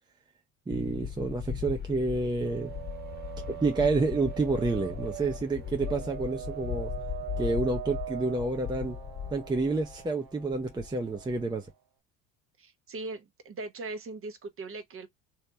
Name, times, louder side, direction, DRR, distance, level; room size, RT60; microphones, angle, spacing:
sound 1, 0.7-10.1 10.4-11.7, left 9 dB, 25° left, 1.3 m, -38 dB
voice 1, 0.7-2.7 3.6-6.9 7.4-9.0 9.3-11.7, right 3 dB, 10° right, 0.7 m, -29 dB
sound 2, 2.5-11.7, right 14 dB, 60° right, 0.9 m, -42 dB
voice 2, 12.6-15.1, right 3 dB, 30° right, 1.1 m, -40 dB
3.3 x 2.8 x 2.8 m
hypercardioid pair, 75°, 40 cm